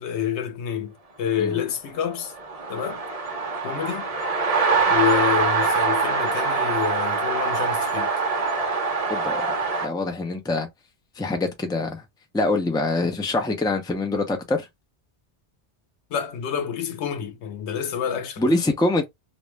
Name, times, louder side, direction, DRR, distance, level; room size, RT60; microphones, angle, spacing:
voice 1, 0.0-2.3 2.7-3.0 3.6-4.1 4.9-8.1 16.1-18.4, left 8 dB, 90° left, 0.9 m, -28 dB
sound 1, 2.2-9.9, right 4 dB, 45° right, 0.6 m, -24 dB
voice 2, 9.1-9.5 9.8-10.7 11.2-12.0 12.3-14.7 18.4-19.0, left 2 dB, 5° left, 0.4 m, -24 dB
2.5 x 2.1 x 3.1 m
omnidirectional pair, 1.1 m